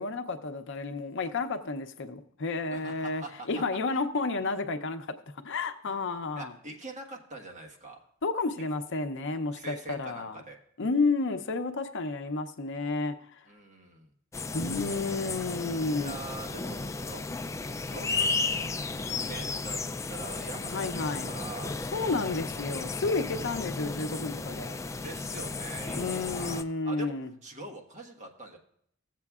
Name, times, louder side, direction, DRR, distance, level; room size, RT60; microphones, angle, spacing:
voice 1, 0.0-5.1 5.4-6.5 8.2-10.4 10.8-13.4 14.5-16.2 20.6-21.3 21.9-24.8 26.0-27.3, left 3 dB, 60° left, 0.6 m, -31 dB
voice 2, 2.7-3.5 5.9-6.0 6.4-8.0 9.5-10.6 13.5-14.1 15.9-17.2 17.8-18.8 19.3-19.8 20.1-21.9 25.0-27.1 27.4-28.6, right 2 dB, 35° right, 1.4 m, -44 dB
sound 1, 14.3-26.6, left 3 dB, 15° left, 0.3 m, -34 dB
16.0 x 7.5 x 2.4 m
head